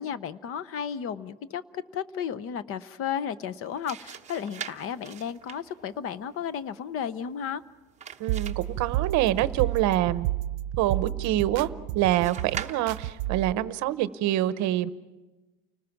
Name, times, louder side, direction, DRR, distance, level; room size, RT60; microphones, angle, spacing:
voice 1, 0.0-7.6, left 8 dB, 35° left, 16 dB, 0.7 m, -33 dB
sound 1, 3.5-9.9 12.1-13.3, right 8 dB, 20° right, 0.9 m, -43 dB
voice 2, 8.2-10.3 10.8-11.7 11.9-14.9, right 14 dB, 50° right, 14 dB, 0.9 m, -26 dB
sound 2, 8.3-13.5, right 14 dB, 75° right, 0.7 m, -31 dB
29.5 x 19.5 x 5.9 m, 1.2 s
cardioid pair, 170°, 38 cm